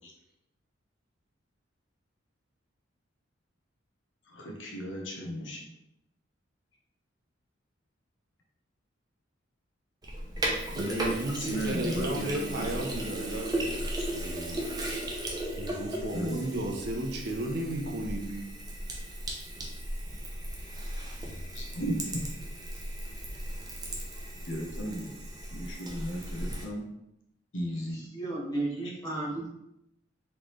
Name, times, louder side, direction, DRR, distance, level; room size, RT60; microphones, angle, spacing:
voice 1, 4.3-5.6 10.7-12.7 16.1-16.4 21.5-22.0 24.5-25.1 25.5-26.8 27.5-28.0, equal, 70° left, -1 dB, 1.0 m, -35 dB
Sink (filling or washing), 10.0-26.6, right 1 dB, 20° right, 0.7 m, -36 dB
voice 2, 10.8-14.7 15.6-18.5, right 1 dB, 55° right, 1 dB, 0.7 m, -34 dB
voice 3, 27.9-29.5, right 2 dB, 20° left, -6 dB, 1.4 m, -34 dB
4.2 x 3.7 x 3.1 m, 0.84 s
head